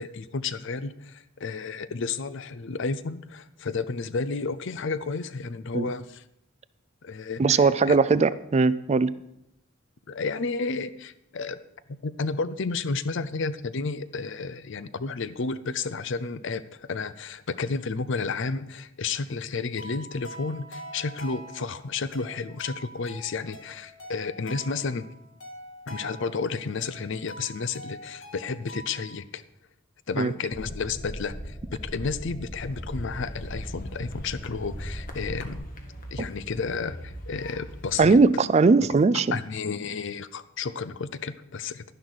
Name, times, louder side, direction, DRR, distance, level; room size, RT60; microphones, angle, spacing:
voice 1, 0.0-6.2 7.0-8.0 10.1-11.6 12.0-25.1 25.9-29.4 30.1-35.6 36.1-38.2 39.3-41.8, left 4 dB, 60° left, 15 dB, 0.6 m, -32 dB
voice 2, 7.4-9.1 30.2-30.3 38.0-39.4, right 4 dB, 30° right, 16 dB, 0.3 m, -20 dB
sound 1, 19.8-29.2, right 1 dB, 80° left, 2.4 m, -45 dB
sound 2, 30.5-35.6, equal, 20° left, 1.3 m, -38 dB
sound 3, 32.5-38.1, equal, 40° left, 1.4 m, -42 dB
11.5 x 11.0 x 4.0 m, 0.82 s
head